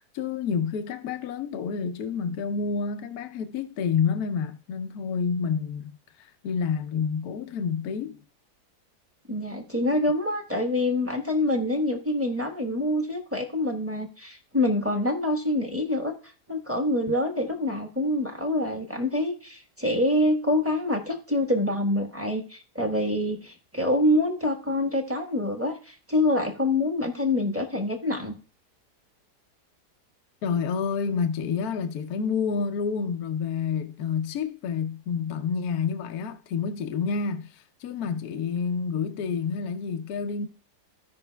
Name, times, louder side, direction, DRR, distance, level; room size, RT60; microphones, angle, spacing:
voice 1, 0.0-8.2 30.4-40.5, left 6 dB, 70° left, 1.1 m, -29 dB
voice 2, 9.3-16.1 16.5-28.3, left 1 dB, 10° right, 1.0 m, -26 dB
16.0 x 5.4 x 2.2 m
omnidirectional pair, 1.7 m